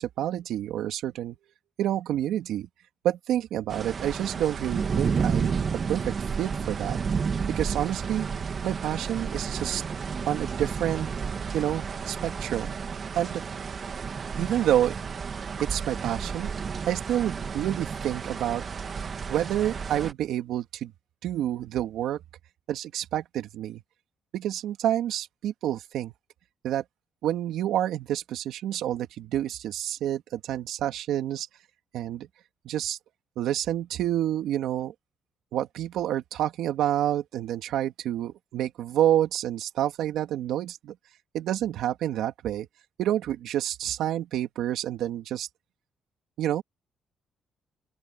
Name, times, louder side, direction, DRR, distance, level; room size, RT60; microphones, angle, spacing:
voice 1, 0.0-1.4 1.8-2.7 3.0-5.5 5.9-7.0 7.5-8.3 8.6-9.8 10.3-11.1 11.5-12.8 13.1-13.4 14.4-14.9 15.6-16.5 16.9-18.6 19.3-20.9 21.2-22.2 22.7-23.8 24.3-26.1 26.6-26.8 27.2-31.5 31.9-32.3 32.6-33.0 33.4-34.9 35.5-40.9 41.3-42.7 43.0-45.5 46.4-46.6, right 12 dB, 80° right, 2.9 m, -28 dB
sound 1, 3.7-20.1, right 6 dB, 45° right, 2.5 m, -31 dB
open air
cardioid pair, 90°, 0 cm